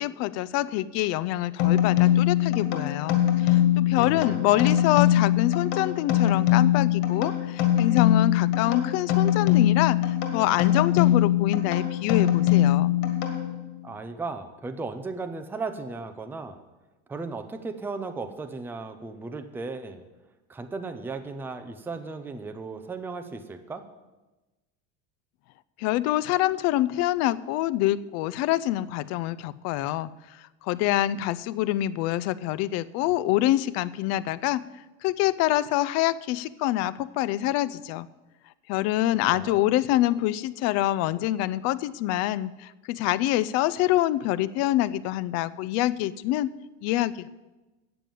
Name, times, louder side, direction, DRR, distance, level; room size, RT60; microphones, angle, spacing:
voice 1, 0.0-12.9 25.8-30.1 30.6-34.6 35.0-38.1 38.7-46.5 46.8-47.3, left 15 dB, 55° left, 18 dB, 0.5 m, -26 dB
sound 1, 1.6-13.8, left 12 dB, 80° left, 1.9 m, -22 dB
voice 2, 4.0-4.8 13.8-16.6 17.1-20.1 20.5-23.8 39.3-39.6, right 3 dB, 5° right, 8 dB, 0.5 m, -36 dB
9.1 x 6.9 x 7.6 m, 1.1 s
cardioid pair, 145°, 31 cm